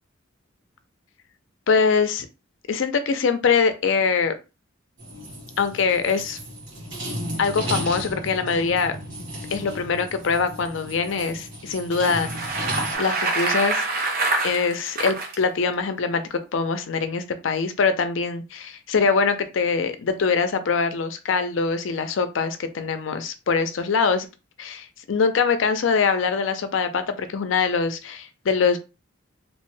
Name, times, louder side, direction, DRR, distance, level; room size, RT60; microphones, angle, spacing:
voice 1, 1.7-2.3 2.7-4.4 5.6-6.4 7.4-9.0 9.5-13.9 14.4-24.3 24.6-28.8, left 5 dB, 75° left, 10 dB, 0.4 m, -23 dB
sound 1, 5.0-13.0, right 1 dB, 65° right, 1.6 m, -34 dB
Bicycle, 12.1-15.4, right 3 dB, 45° right, 0.6 m, -26 dB
2.9 x 2.1 x 3.1 m, 0.29 s
head